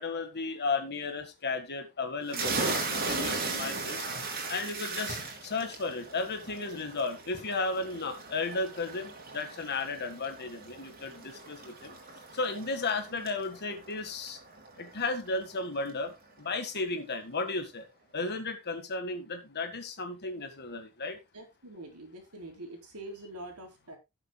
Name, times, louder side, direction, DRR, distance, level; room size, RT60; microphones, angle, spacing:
voice 1, 0.0-4.1 4.5-11.9 12.3-14.4 14.8-16.1 16.4-17.9 18.1-21.2, left 3 dB, 50° left, 7 dB, 1.7 m, -34 dB
sound 1, 2.3-15.6, right 3 dB, 45° right, 3.3 m, -37 dB
voice 2, 21.3-24.0, right 1 dB, 85° right, 3 dB, 4.0 m, -45 dB
17.0 x 7.4 x 2.3 m, 0.22 s
head